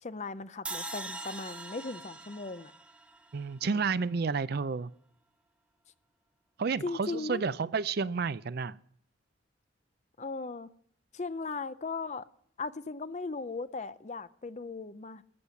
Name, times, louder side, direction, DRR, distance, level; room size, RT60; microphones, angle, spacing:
voice 1, 0.0-2.7 3.6-3.8 6.8-7.5 10.2-10.7 11.1-12.2 12.6-15.2, left 3 dB, 35° left, 0.5 m, -38 dB
sound 1, 0.7-3.9, right 2 dB, 5° right, 0.7 m, -42 dB
voice 2, 3.3-4.9 6.6-8.8, right 5 dB, 50° right, 0.4 m, -31 dB
14.0 x 8.1 x 7.1 m
head